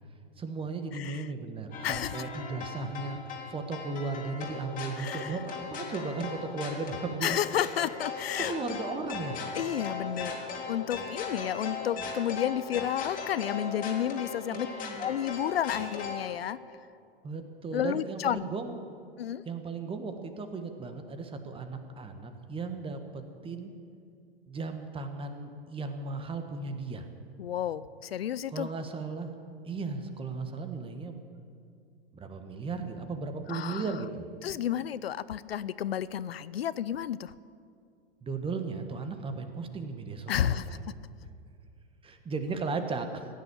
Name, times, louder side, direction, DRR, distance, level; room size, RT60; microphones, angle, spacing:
voice 1, 0.4-7.4 8.4-9.4 14.5-15.1 17.2-18.8 19.4-23.7 24.5-27.1 28.5-29.3 29.6-31.2 32.1-34.3 38.2-40.8 42.0-43.3, right 4 dB, 20° right, 7 dB, 1.4 m, -36 dB
sound 1, 1.7-16.4, left 5 dB, 25° left, 2.7 m, -38 dB
voice 2, 1.8-2.2 5.0-5.4 7.2-8.5 9.5-10.3 10.7-14.7 15.0-16.6 17.7-18.5 19.2-19.4 27.4-28.7 33.5-33.9 34.4-37.3 40.3-40.8, left 10 dB, 80° left, 17 dB, 0.5 m, -31 dB
16.0 x 10.0 x 8.4 m, 2.4 s
hypercardioid pair, 105°, 30 cm